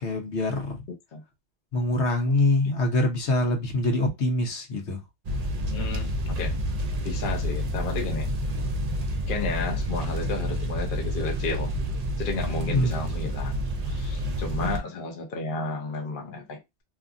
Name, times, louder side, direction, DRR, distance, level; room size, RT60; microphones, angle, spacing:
voice 1, 0.0-0.8 1.7-5.0 12.6-13.0 14.6-14.7, left 2 dB, 80° left, 1.1 m, -25 dB
sound 1, 5.2-14.8, equal, 50° right, 0.5 m, -29 dB
voice 2, 5.7-6.6 7.0-8.3 9.3-11.8 12.2-13.6 13.9-16.8, left 3 dB, 55° left, 0.8 m, -32 dB
2.7 x 2.5 x 2.4 m
omnidirectional pair, 1.2 m